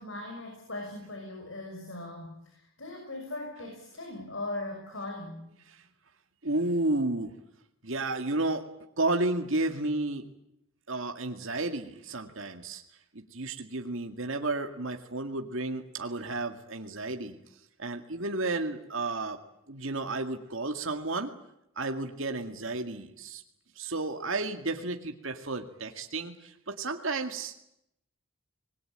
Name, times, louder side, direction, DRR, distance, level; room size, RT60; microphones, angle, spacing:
voice 1, 0.0-5.5, left 2 dB, 60° left, 2 dB, 6.1 m, -39 dB
voice 2, 6.4-7.3 7.8-8.7 9.0-10.2 10.9-12.8 13.1-17.4 17.8-19.4 19.7-21.3 21.8-23.4 23.8-27.6, right 2 dB, 65° right, 4 dB, 2.1 m, -32 dB
26.0 x 21.0 x 8.8 m, 0.80 s
head